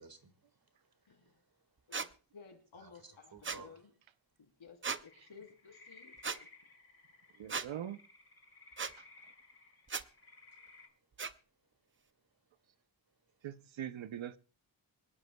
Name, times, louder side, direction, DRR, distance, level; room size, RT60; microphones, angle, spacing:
voice 1, 0.0-1.6 2.8-3.8, right 4 dB, 50° right, 1.8 m, -57 dB
voice 2, 1.1-1.4 1.9-3.9 4.4-6.5, left 5 dB, 85° left, 3.3 m, -56 dB
sound 1, 1.9-2.1 3.4-3.6 4.8-5.0 6.2-6.4 7.5-7.7 8.8-8.9 9.9-10.0 11.2-11.3, right 5 dB, 25° right, 0.5 m, -37 dB
sound 2, 5.0-10.9, left 3 dB, 30° left, 2.7 m, -59 dB
voice 3, 7.4-8.0 9.0-9.1 13.4-14.4, right 10 dB, 75° right, 0.7 m, -42 dB
25.0 x 10.5 x 2.2 m
wide cardioid pair, 100°, 46 cm